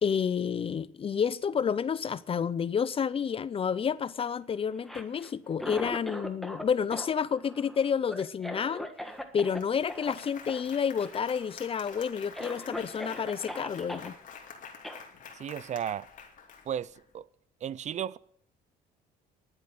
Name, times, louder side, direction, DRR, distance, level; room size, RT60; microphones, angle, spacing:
voice 1, 0.0-8.9 9.3-14.1, left 7 dB, 35° left, 0.6 m, -30 dB
Cough, 4.7-6.6 6.9-9.6 9.9-10.1 10.5-10.6 10.9-11.4 11.9-12.0 12.3-14.1 14.8-15.0, equal, ahead, 1.5 m, -40 dB
Applause, 9.1-9.2 9.5-17.0, left 6 dB, 50° left, 2.7 m, -48 dB
voice 2, 15.3-16.1 16.7-17.2 17.6-18.2, right 9 dB, 45° right, 0.5 m, -34 dB
11.0 x 8.1 x 9.2 m
cardioid pair, 110°, 17 cm